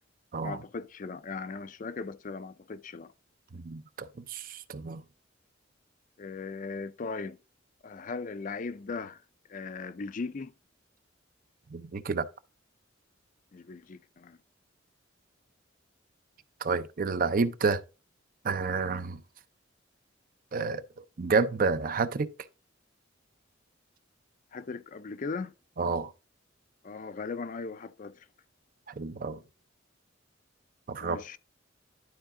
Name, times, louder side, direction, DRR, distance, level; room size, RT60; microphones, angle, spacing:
voice 1, 0.4-3.1 6.2-7.4 7.8-9.2 9.5-10.5 13.5-14.4 24.5-25.5 26.8-28.3 31.0-31.4, left 4 dB, 40° left, 0.4 m, -38 dB
voice 2, 3.5-5.0 11.7-12.3 16.6-17.8 18.4-19.2 20.5-22.3 25.8-26.1 28.9-29.4 30.9-31.2, right 4 dB, 45° right, 0.5 m, -30 dB
11.5 x 4.5 x 3.7 m
head